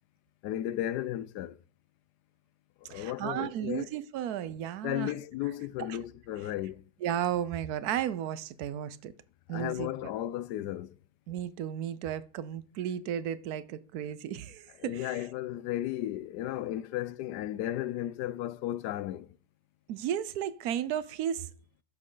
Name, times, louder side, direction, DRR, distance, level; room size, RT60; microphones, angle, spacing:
voice 1, 0.4-1.6 2.8-3.9 4.8-6.9 9.5-11.0 14.8-19.4, left 13 dB, 80° left, 1.1 m, -34 dB
voice 2, 2.9-5.1 7.0-9.1 9.5-9.9 11.3-15.2 19.9-21.5, right 10 dB, 70° right, 1.2 m, -34 dB
10.5 x 7.4 x 3.9 m
omnidirectional pair, 1.8 m